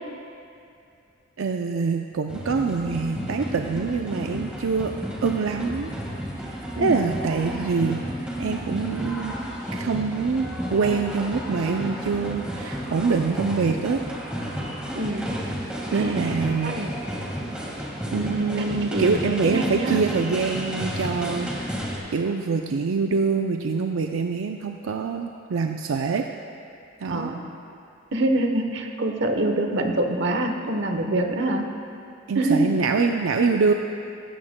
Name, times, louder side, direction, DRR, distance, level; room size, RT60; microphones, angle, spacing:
voice 1, 1.4-4.9 5.2-5.9 6.8-8.0 8.4-9.3 9.7-10.4 10.7-14.0 15.9-16.7 18.1-21.5 22.1-26.3 27.0-27.3 32.3-33.7, right 4 dB, 90° right, 4 dB, 0.5 m, -25 dB
sound 1, 2.3-22.0, equal, 5° right, 1.8 m, -32 dB
voice 2, 14.9-15.3 15.9-16.1 16.6-16.9 18.1-19.2 19.5-20.0 27.1-27.4 28.1-31.7 32.3-32.7, right 2 dB, 60° right, 4 dB, 1.0 m, -25 dB
16.5 x 14.5 x 2.2 m, 2.6 s
head